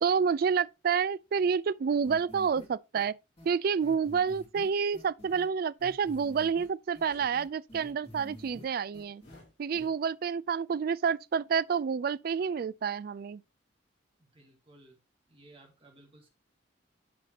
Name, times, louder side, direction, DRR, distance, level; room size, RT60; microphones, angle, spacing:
voice 1, 0.0-3.2 3.4-9.2 9.6-13.4, right 6 dB, 50° right, 0.3 m, -29 dB
sound 1, 2.0-2.6 3.0-3.1 3.4-3.5 3.8-5.5 5.8-6.7 6.9-8.6 8.9-9.4 9.7-9.9, left 1 dB, 30° left, 2.8 m, -49 dB
sound 2, 7.0-7.4 9.2-9.5, left 1 dB, 70° left, 4.8 m, -56 dB
voice 2, 14.2-15.0 15.3-16.3, right 2 dB, 30° right, 2.3 m, -57 dB
11.5 x 4.2 x 2.9 m
head